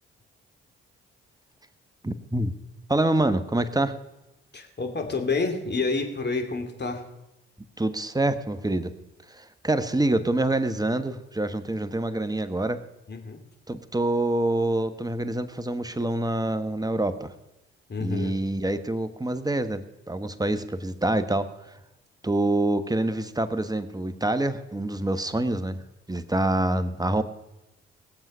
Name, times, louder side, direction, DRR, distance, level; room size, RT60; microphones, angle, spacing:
voice 1, 2.0-2.5 2.9-3.9 7.8-8.9 9.3-12.8 13.7-17.3 18.0-21.5 22.2-25.8 26.1-27.2, right 1 dB, 10° right, 11 dB, 1.3 m, -26 dB
voice 2, 4.5-7.0 13.1-13.4 17.9-18.3, left 3 dB, 35° left, 4 dB, 2.8 m, -28 dB
20.0 x 7.6 x 5.6 m, 0.92 s
hypercardioid pair, 45°, 30 cm